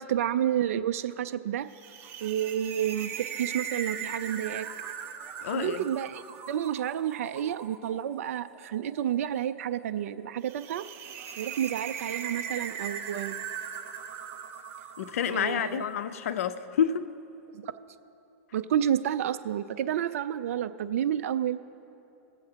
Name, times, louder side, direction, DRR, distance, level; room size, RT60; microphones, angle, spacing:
voice 1, 0.0-1.7 2.2-4.7 5.5-10.8 11.4-13.3 15.3-15.9 17.5-17.7 18.5-21.6, right 10 dB, 70° right, 12 dB, 0.4 m, -30 dB
sound 1, 1.7-16.0, right 7 dB, 30° right, 0.8 m, -40 dB
voice 2, 5.4-5.8 15.0-17.1, left 8 dB, 75° left, 12 dB, 0.5 m, -29 dB
21.5 x 7.8 x 2.8 m, 2.8 s
hypercardioid pair, 135°, 8 cm